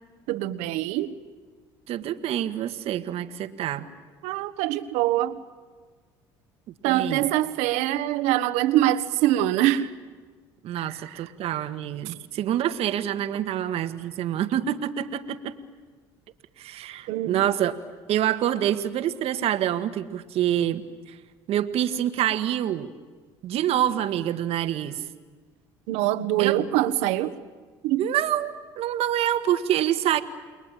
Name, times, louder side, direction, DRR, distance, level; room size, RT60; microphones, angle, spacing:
voice 1, 0.3-1.1 4.2-5.4 6.8-9.9 10.8-11.2 12.1-12.2 17.1-17.4 25.9-27.4 27.8-28.0, right 14 dB, 80° right, 12 dB, 1.4 m, -24 dB
voice 2, 1.9-3.9 6.8-7.3 10.6-15.6 16.6-17.7 18.1-21.2 21.5-22.9 23.4-25.0 26.4-26.6 28.0-30.2, right 11 dB, 65° right, 9 dB, 1.6 m, -26 dB
29.5 x 21.5 x 9.0 m, 1.5 s
supercardioid pair, 80°, 11 cm